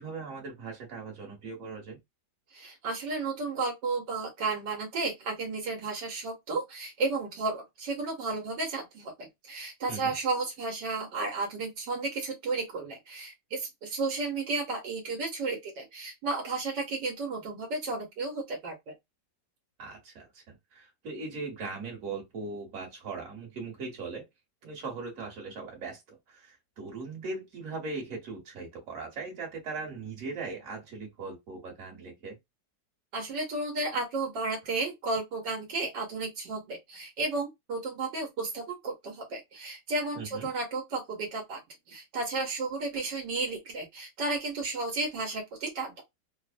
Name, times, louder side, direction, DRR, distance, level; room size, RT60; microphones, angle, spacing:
voice 1, 0.0-2.0 9.9-10.1 19.8-24.3 24.6-32.4 40.1-40.5, right 4 dB, 50° right, 1.4 m, -39 dB
voice 2, 2.5-18.9 33.1-41.6 41.9-46.0, right 3 dB, 75° right, 1.5 m, -33 dB
3.3 x 2.0 x 2.4 m
omnidirectional pair, 2.0 m